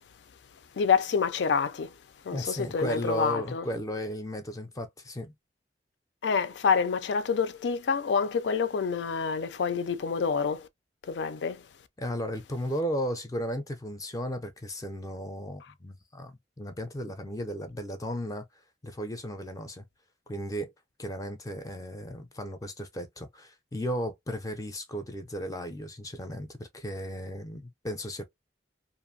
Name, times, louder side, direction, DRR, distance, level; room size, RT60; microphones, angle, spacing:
voice 1, 0.8-1.9 2.3-3.7 6.2-10.7 11.1-11.6, left 6 dB, 80° left, 0.4 m, -27 dB
voice 2, 2.3-5.3 12.0-18.5 18.8-19.9 20.3-20.7 21.0-28.3, equal, 20° left, 0.5 m, -35 dB
2.6 x 2.4 x 2.6 m
head